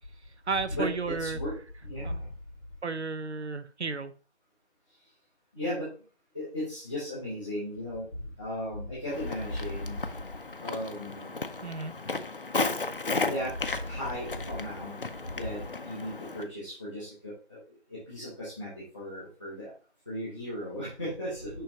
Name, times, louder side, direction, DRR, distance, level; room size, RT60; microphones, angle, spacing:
voice 1, 0.5-1.4 2.0-2.2 2.8-4.1 11.6-12.0, right 4 dB, 70° right, 12 dB, 0.9 m, -33 dB
voice 2, 1.2-1.6 1.8-2.2 5.5-5.9 6.3-8.0 8.4-10.0 10.6-11.3 13.2-13.5 13.9-14.9 15.3-17.6 18.1-19.7 20.1-21.6, left 1 dB, 5° right, -15 dB, 1.1 m, -35 dB
Walk footsteps, 9.1-16.5, left 3 dB, 50° left, 0.6 m, -35 dB
11.0 x 3.8 x 2.8 m, 0.37 s
figure-of-eight pair, 165°, 35 cm